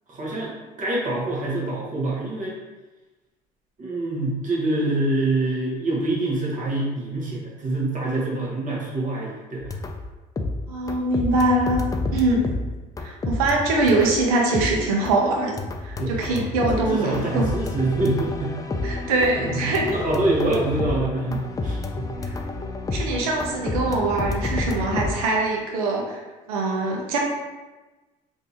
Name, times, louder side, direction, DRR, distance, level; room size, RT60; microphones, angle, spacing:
voice 1, 0.1-0.5 0.8-2.5 3.8-9.7 16.0-16.4 16.7-18.5 19.0-19.1 19.4-22.1, right 2 dB, 45° right, -4 dB, 1.3 m, -25 dB
sound 1, 9.6-10.1 10.4-14.3 14.5-15.2 15.6-25.1, left 2 dB, 20° left, 0.4 m, -30 dB
voice 2, 10.7-11.8 12.1-12.5 13.0-15.6 15.8-17.5 18.8-19.9 21.3-21.4 22.2-22.4 22.9-26.2 26.5-27.2, right 2 dB, 90° right, 0 dB, 0.7 m, -23 dB
3.5 x 2.7 x 2.9 m, 1.2 s
hypercardioid pair, 70°, 18 cm